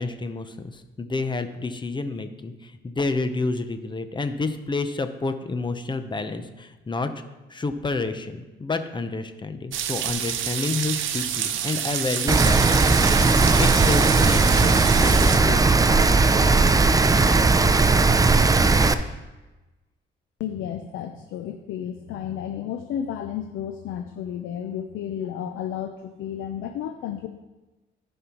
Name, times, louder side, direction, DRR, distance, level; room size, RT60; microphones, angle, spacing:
voice 1, 0.0-7.1 7.5-13.0 13.6-15.6 15.9-16.2, left 3 dB, 25° left, 9 dB, 0.8 m, -29 dB
sound 1, 9.7-15.4, right 9 dB, 80° right, 0.7 m, -28 dB
Rain, 12.3-18.9, right 3 dB, 20° right, 0.4 m, -18 dB
voice 2, 20.4-27.3, left 9 dB, 80° left, 7 dB, 0.6 m, -32 dB
15.0 x 5.5 x 3.0 m, 1.1 s
cardioid pair, 90°, 20 cm